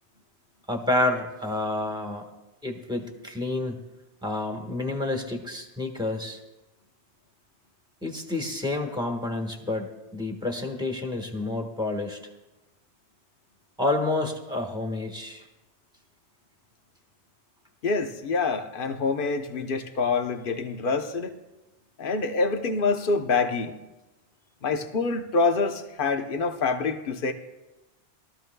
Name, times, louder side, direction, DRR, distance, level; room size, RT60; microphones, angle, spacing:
voice 1, 0.7-2.3 2.6-3.8 4.2-6.4 8.0-12.2 13.8-15.4, left 2 dB, 5° right, 3 dB, 1.4 m, -29 dB
voice 2, 17.8-21.4 22.0-23.7 24.6-27.3, left 4 dB, 50° left, 6 dB, 1.1 m, -26 dB
21.5 x 13.5 x 2.3 m, 1.0 s
omnidirectional pair, 1.2 m